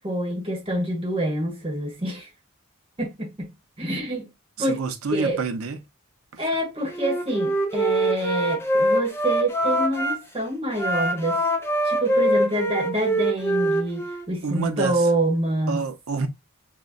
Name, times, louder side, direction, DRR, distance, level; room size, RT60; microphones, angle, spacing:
voice 1, 0.0-2.3 3.0-3.5 3.8-4.3 4.6-4.8 5.1-5.4 6.4-11.4 11.8-15.8, right 1 dB, 25° right, 1.2 m, -26 dB
voice 2, 4.7-5.8 14.4-14.9 15.7-16.3, right 4 dB, 85° right, 0.6 m, -27 dB
Wind instrument woodwind instrument, 6.9-10.2 10.7-14.3, right 1 dB, 10° left, 0.4 m, -24 dB
5.0 x 2.1 x 2.3 m
head